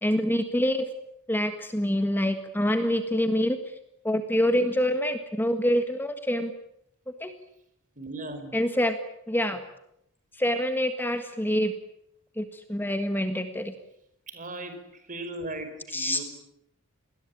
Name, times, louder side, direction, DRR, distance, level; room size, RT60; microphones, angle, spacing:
voice 1, 0.0-0.9 1.3-3.7 4.0-6.5 7.2-7.3 8.5-8.9 9.3-9.6 10.3-11.7 12.4-13.7 15.9-16.2, equal, 10° left, 8 dB, 1.6 m, -26 dB
voice 2, 7.9-8.7 14.3-16.2, right 2 dB, 35° right, 8 dB, 5.1 m, -38 dB
29.0 x 21.0 x 8.7 m, 0.77 s
head